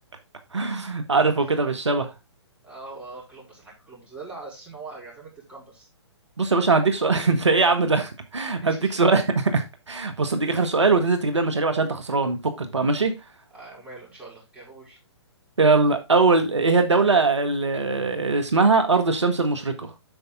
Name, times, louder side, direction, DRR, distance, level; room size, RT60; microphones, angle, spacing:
voice 1, 0.5-2.1 6.4-13.1 15.6-19.9, right 3 dB, 80° right, 1.7 m, -21 dB
voice 2, 2.6-5.9 8.6-9.0 13.5-15.0, right 3 dB, 5° right, 4.5 m, -42 dB
8.9 x 5.5 x 3.7 m
figure-of-eight pair, 130°, 15 cm